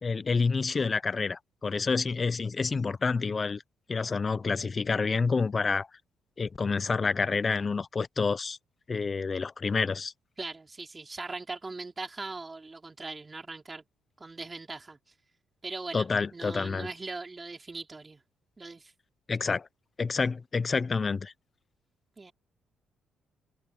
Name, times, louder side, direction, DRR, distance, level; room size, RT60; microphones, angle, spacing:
voice 1, 0.0-3.6 3.9-5.9 6.4-8.6 8.9-10.1 15.9-16.9 19.3-19.7 20.0-21.3, left 4 dB, 35° left, 0.6 m, -28 dB
voice 2, 10.4-13.8 14.2-15.0 15.6-18.2 18.6-18.9 22.2-22.3, right 3 dB, 25° right, 4.3 m, -40 dB
cardioid pair, 90°, 0 cm